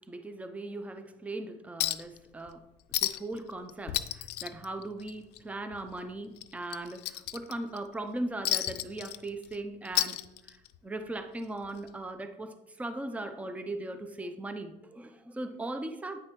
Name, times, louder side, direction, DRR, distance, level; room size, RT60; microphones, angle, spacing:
voice 1, 0.1-2.6 3.0-10.2 10.5-10.6 10.8-16.2, right 2 dB, 10° right, 8 dB, 0.5 m, -38 dB
Chink clink, 1.8-2.2 2.5-2.6 2.9-3.4 3.7-5.4 5.7-5.9 6.4-7.8 8.5-9.6 9.9-10.8 11.9-12.0, left 15 dB, 80° left, 0.4 m, -32 dB
9.0 x 6.2 x 3.0 m, 1.0 s
cardioid pair, 110°, 17 cm